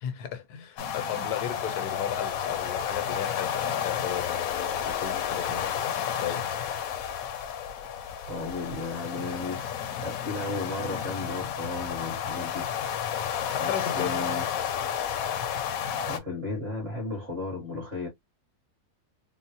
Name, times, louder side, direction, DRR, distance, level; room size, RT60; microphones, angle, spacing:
voice 1, 0.0-5.7 6.1-6.5 13.5-14.2, left 9 dB, 85° left, 1.2 m, -35 dB
sound 1, 0.8-16.2, left 9 dB, 70° left, 0.9 m, -31 dB
voice 2, 8.3-12.7 13.6-14.4 16.0-18.1, left 2 dB, 40° right, 1.7 m, -34 dB
3.8 x 2.0 x 2.7 m
omnidirectional pair, 1.6 m